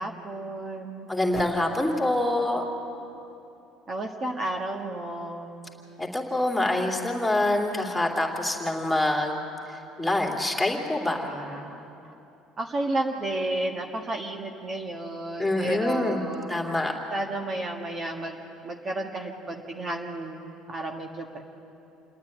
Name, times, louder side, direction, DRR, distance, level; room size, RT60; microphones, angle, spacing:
voice 1, 0.0-1.1 3.9-5.6 11.2-12.1 12.6-16.8 17.1-18.4 18.6-20.4 20.7-21.4, right 1 dB, 35° right, 1 dB, 1.6 m, -32 dB
voice 2, 1.1-2.6 6.0-9.4 10.0-11.3 15.4-16.2 16.5-16.9, left 1 dB, 5° left, 0 dB, 3.1 m, -25 dB
28.5 x 9.5 x 9.9 m, 2.9 s
supercardioid pair, 100°, 0 cm